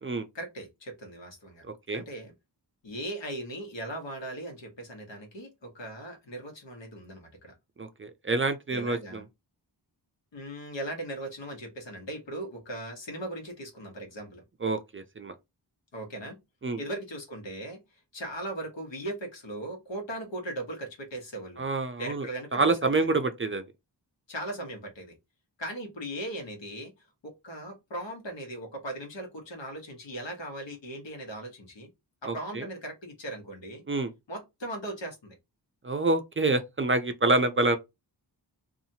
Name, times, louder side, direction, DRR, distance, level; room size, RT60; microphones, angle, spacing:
voice 1, 0.3-1.6 1.9-2.3 2.8-7.5 8.7-9.2 10.3-14.4 15.9-16.4 16.8-17.8 18.1-21.6 22.0-23.1 24.3-25.1 25.6-26.9 27.2-31.9 32.2-33.8 34.3-35.3, right 1 dB, 85° left, 1.1 m, -38 dB
voice 2, 1.6-2.0 7.8-9.2 14.6-15.3 16.6-16.8 21.6-23.6 32.3-32.7 33.9-34.1 35.8-37.8, right 3 dB, 30° right, 0.4 m, -27 dB
2.7 x 2.4 x 2.7 m
wide cardioid pair, 60°, 44 cm